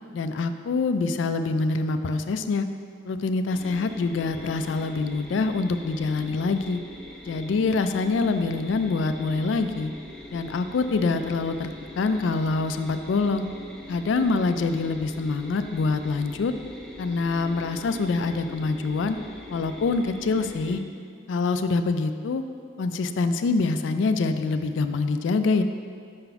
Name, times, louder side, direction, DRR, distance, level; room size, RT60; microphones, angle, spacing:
voice 1, 0.1-2.7 3.0-6.8 7.3-9.9 10.3-13.5 13.9-16.5 17.0-19.2 19.5-20.8 21.3-22.4 22.8-25.6, left 3 dB, 70° left, 9 dB, 0.3 m, -25 dB
sound 1, 3.5-20.8, left 1 dB, 5° left, 0.5 m, -42 dB
5.7 x 4.0 x 5.6 m, 2.2 s
head